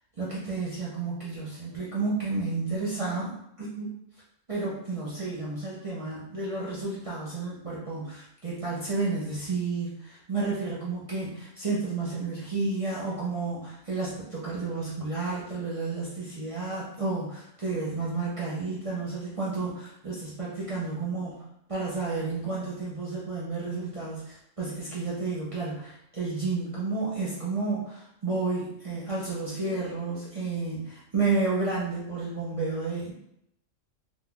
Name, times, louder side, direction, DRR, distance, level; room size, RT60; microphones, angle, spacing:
voice 1, 0.2-3.9 4.5-21.4 21.7-33.1, right 3 dB, 35° right, -7 dB, 0.6 m, -31 dB
3.7 x 2.2 x 2.3 m, 0.76 s
omnidirectional pair, 1.3 m